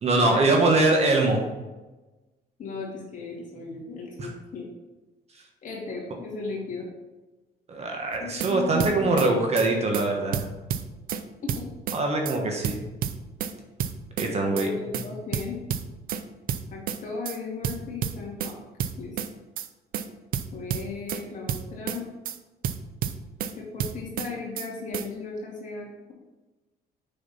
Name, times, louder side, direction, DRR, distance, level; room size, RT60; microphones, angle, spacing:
voice 1, 0.0-1.4 4.2-4.3 7.7-10.4 11.9-12.8 14.2-14.7, right 2 dB, 40° right, 2 dB, 1.2 m, -23 dB
voice 2, 2.6-4.7 5.6-6.9 8.2-9.1 11.4-11.7 14.4-15.6 16.7-18.5 19.0-19.2 20.5-22.0 23.6-26.1, left 4 dB, 50° left, -3 dB, 2.1 m, -36 dB
sound 1, 8.1-8.5 8.8-9.3 9.6-9.7 9.9-10.1 10.3-11.2 11.5-12.0 12.2-12.4 12.6-13.5 13.8-14.3 14.6-14.7 14.9-15.1 15.3-16.2 16.5-17.0 17.2-17.4 17.6-18.5 18.8-19.3 19.6-19.7 19.9-20.1 20.3-21.2 21.5-22.0 22.2-22.4 22.6-23.5 23.8-24.3 24.6-24.7 24.9-25.1, right 9 dB, 60° right, 0.6 m, -30 dB
6.7 x 5.7 x 4.1 m, 1.2 s
cardioid pair, 110°, 17 cm